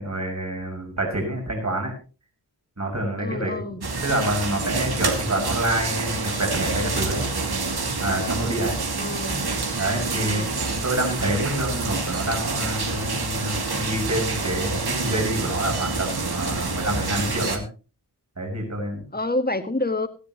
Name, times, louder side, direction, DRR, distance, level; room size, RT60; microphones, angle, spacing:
voice 1, 0.0-1.9 2.8-3.6 4.0-7.3 8.0-8.8 9.8-17.6 18.4-19.0, right 1 dB, 40° right, 1 dB, 6.2 m, -27 dB
voice 2, 3.2-3.8 9.0-9.6 10.2-10.5 19.1-20.1, left 2 dB, 20° left, 8 dB, 2.0 m, -28 dB
sound 1, 3.8-17.6, right 3 dB, 65° right, 2.4 m, -27 dB
18.0 x 14.0 x 3.0 m, 0.34 s
cardioid pair, 55°, 41 cm